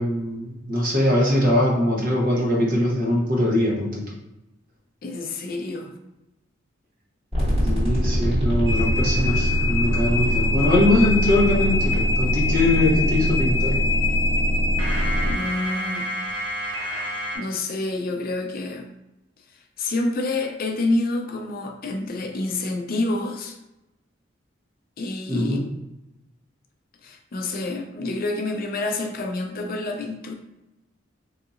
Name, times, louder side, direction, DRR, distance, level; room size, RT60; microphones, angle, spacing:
voice 1, 0.0-4.1 7.6-13.8 25.3-25.6, left 1 dB, 45° right, -3 dB, 1.0 m, -22 dB
voice 2, 5.0-5.9 15.3-16.1 17.3-18.9 19.8-23.6 25.0-25.6 27.0-30.3, left 2 dB, 50° left, 3 dB, 0.4 m, -28 dB
sound 1, 7.3-15.3, equal, 30° right, 1.5 m, -23 dB
sound 2, 8.7-17.4, left 3 dB, 75° right, 0.9 m, -27 dB
4.0 x 2.8 x 2.4 m, 0.94 s
head